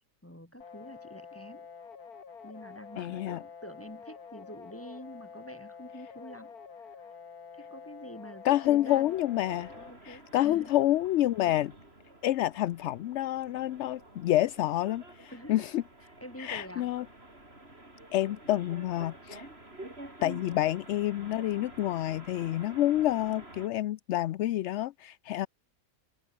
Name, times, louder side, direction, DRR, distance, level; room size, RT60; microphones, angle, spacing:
voice 1, 0.2-1.7 2.4-7.1 7.5-9.1 9.7-10.7 15.3-15.7 16.0-16.9, equal, 10° left, 1.4 m, -46 dB
sound 1, 0.6-9.9, left 5 dB, 85° left, 2.5 m, -48 dB
voice 2, 3.0-3.4 8.4-9.7 10.0-11.7 12.2-15.8 16.4-17.0 18.1-19.5 20.2-25.5, left 14 dB, 65° left, 0.7 m, -28 dB
sound 2, 8.9-23.7, right 1 dB, 40° right, 6.1 m, -49 dB
open air
omnidirectional pair, 1.5 m